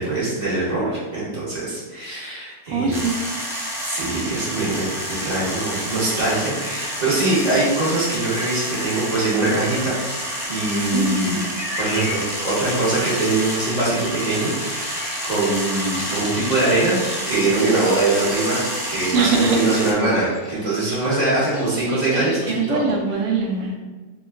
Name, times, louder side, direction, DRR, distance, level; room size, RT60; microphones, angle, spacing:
voice 1, 0.0-3.0 3.8-11.4 11.7-12.2 12.4-15.0 15.2-17.0 17.3-22.8 23.1-23.2, right 2 dB, 35° right, -8 dB, 1.0 m, -22 dB
voice 2, 2.7-3.2 10.9-11.0 19.1-19.7 20.9-21.0 21.9-23.7, right 4 dB, 75° right, 1 dB, 0.9 m, -22 dB
sound 1, 2.9-19.9, equal, 5° right, 0.4 m, -29 dB
Bird vocalization bird call bird song, 10.3-23.0, left 1 dB, 50° left, 0.7 m, -37 dB
2.9 x 2.3 x 3.3 m, 1.3 s
omnidirectional pair, 1.3 m